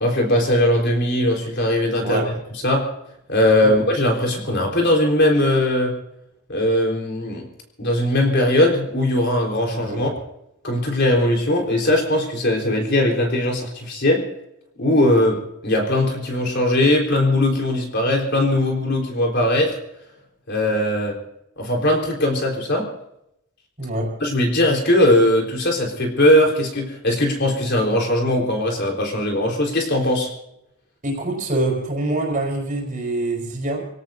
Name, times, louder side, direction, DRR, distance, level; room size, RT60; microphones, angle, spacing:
voice 1, 0.0-2.2 2.6-2.9 3.3-5.9 6.5-7.5 7.8-10.1 10.6-14.2 14.8-19.8 20.5-21.2 21.6-22.9 24.2-30.3, left 1 dB, 50° left, 4.2 m, -19 dB
voice 2, 2.0-2.3 3.6-3.8 9.7-10.1 23.8-24.2 31.0-33.8, right 2 dB, 35° right, 4.7 m, -25 dB
27.0 x 17.5 x 2.7 m
head